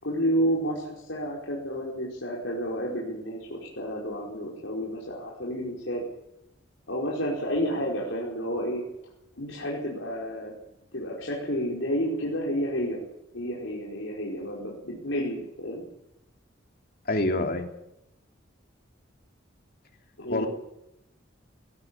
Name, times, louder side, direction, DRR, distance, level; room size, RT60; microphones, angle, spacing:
voice 1, 0.0-6.0 6.9-8.8 9.3-10.5 10.9-13.0 13.3-15.8 20.2-20.5, equal, 70° left, -4 dB, 4.9 m, -30 dB
voice 2, 17.1-17.7 20.3-20.5, left 2 dB, 50° left, 4 dB, 2.8 m, -26 dB
18.5 x 17.5 x 8.8 m, 0.86 s
head